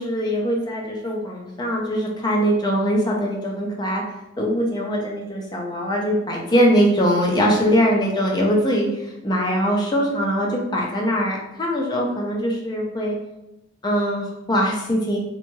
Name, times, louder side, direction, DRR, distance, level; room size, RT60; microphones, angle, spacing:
voice 1, 0.0-4.0 4.4-13.1 13.8-15.2, equal, 20° left, -1 dB, 0.5 m, -22 dB
2.7 x 2.2 x 3.0 m, 0.89 s
head